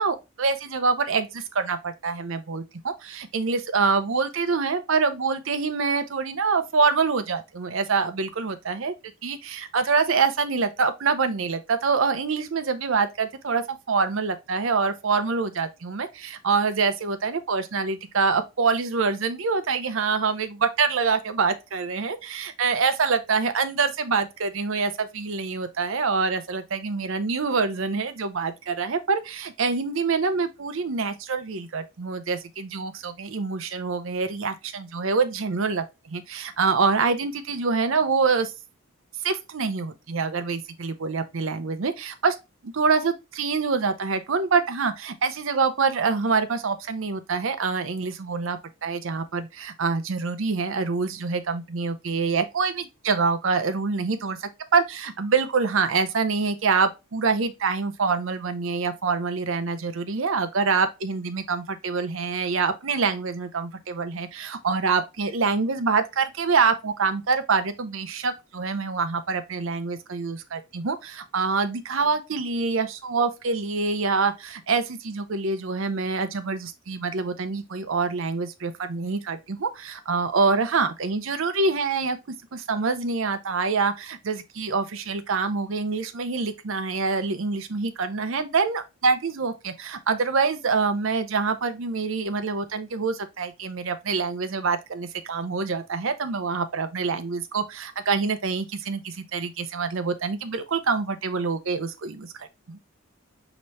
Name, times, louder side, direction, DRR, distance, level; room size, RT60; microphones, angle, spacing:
voice 1, 0.0-8.9 9.2-38.5 39.2-42.4 42.6-82.2 82.5-102.8, right 4 dB, 65° right, 0.6 m, -25 dB
5.4 x 3.0 x 3.1 m
head